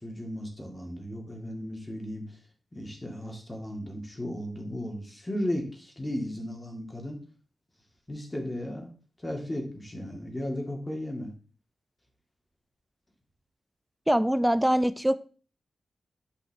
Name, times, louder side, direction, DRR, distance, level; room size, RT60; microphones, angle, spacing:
voice 1, 0.0-2.4 2.7-7.2 8.1-8.9 9.2-11.3, left 1 dB, 25° left, 1 dB, 2.6 m, -35 dB
voice 2, 14.1-15.2, equal, 5° right, 13 dB, 0.6 m, -23 dB
8.4 x 5.4 x 3.6 m, 0.39 s
cardioid pair, 50°, 0 cm